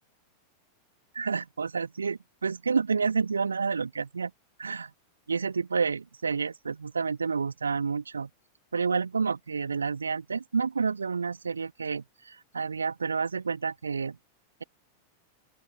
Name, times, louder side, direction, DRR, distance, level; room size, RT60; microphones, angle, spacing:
voice 1, 1.1-4.3 4.6-4.9 5.3-8.3 8.7-14.2, right 5 dB, 75° right, 1.7 m, -29 dB
open air
figure-of-eight pair, 90°, 0 cm